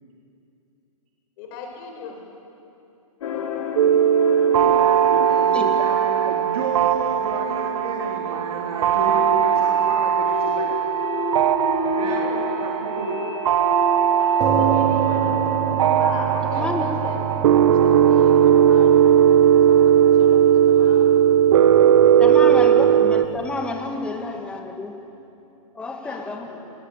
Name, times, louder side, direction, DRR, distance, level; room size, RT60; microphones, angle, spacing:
voice 1, 1.4-2.2 14.5-15.4 16.0-21.2 26.0-26.7, left 5 dB, 35° left, 2 dB, 5.2 m, -37 dB
sound 1, 3.2-18.5, left 3 dB, 60° left, 3.7 m, -32 dB
sound 2, 3.8-23.2, right 9 dB, 55° right, 1.0 m, -18 dB
voice 2, 4.5-10.8 11.9-13.2, right 4 dB, 75° right, 0 dB, 3.6 m, -32 dB
sound 3, 14.4-23.5, right 8 dB, 20° right, 1.1 m, -29 dB
voice 3, 16.6-16.9 22.2-24.9 25.8-26.5, left 3 dB, 5° left, 3 dB, 1.8 m, -29 dB
20.5 x 20.0 x 9.0 m, 2.9 s
hypercardioid pair, 155°, 19 cm